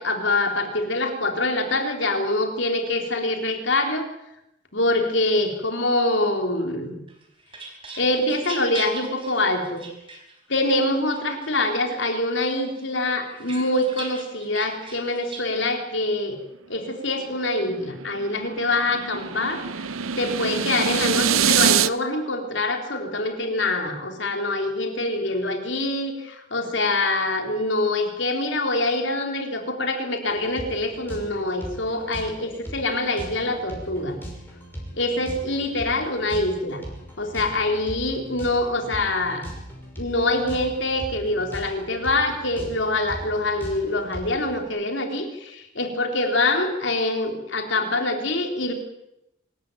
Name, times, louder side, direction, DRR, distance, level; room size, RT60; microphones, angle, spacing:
voice 1, 0.0-4.1 4.7-7.0 8.0-9.8 10.5-16.4 16.7-19.8 20.2-34.2 35.0-36.8 37.2-39.5 40.0-48.7, left 2 dB, 60° left, 5 dB, 3.8 m, -25 dB
sound 1, 7.1-10.6 11.1-12.0 12.4-15.5, right 4 dB, 25° right, 4.6 m, -40 dB
sound 2, 17.6-21.9, right 8 dB, 85° right, 0.8 m, -24 dB
sound 3, 30.3-44.6, equal, 10° left, 6.1 m, -39 dB
24.5 x 14.5 x 9.2 m, 0.87 s
head